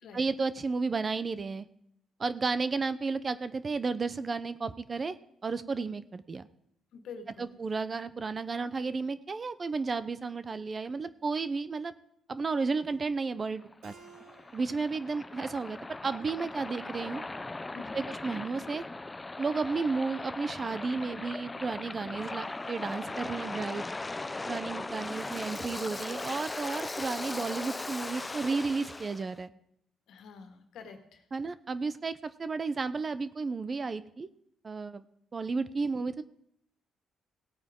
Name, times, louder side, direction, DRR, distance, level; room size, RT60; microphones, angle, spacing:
voice 1, 0.1-1.7 2.2-5.1 5.4-6.4 7.4-11.9 12.3-13.9 14.5-17.2 17.9-18.8 19.4-23.8 24.5-29.5 31.3-34.3 34.6-35.0 35.3-36.2, right 4 dB, 35° right, 14 dB, 0.6 m, -33 dB
voice 2, 6.9-7.6 17.7-18.1 30.1-31.2, left 5 dB, 80° left, 5 dB, 1.7 m, -47 dB
Waves surf, 13.4-29.2, left 2 dB, 20° left, 0.5 m, -39 dB
Keyboard (musical), 13.8-17.1, right 6 dB, 85° right, 1.2 m, -59 dB
17.5 x 8.7 x 3.7 m, 0.73 s
cardioid pair, 90°, 0 cm